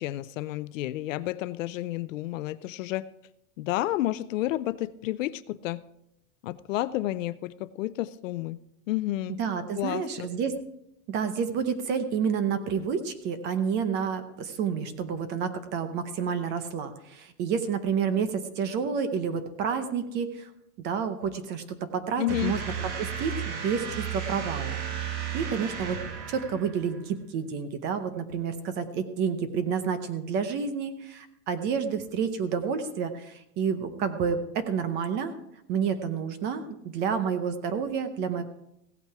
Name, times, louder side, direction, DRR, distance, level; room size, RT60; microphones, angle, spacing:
voice 1, 0.0-3.0 3.6-5.8 6.4-8.6 8.9-9.4 9.7-10.3 22.2-22.6, left 15 dB, 60° left, 16 dB, 0.6 m, -31 dB
voice 2, 9.4-10.5 11.1-20.5 20.8-24.8 25.3-26.0 26.3-35.3 35.7-38.4, right 6 dB, 25° right, 10 dB, 0.7 m, -29 dB
sound 1, 22.3-27.0, right 8 dB, 40° right, 1.7 m, -34 dB
16.0 x 8.4 x 4.7 m, 0.83 s
supercardioid pair, 165°, 44 cm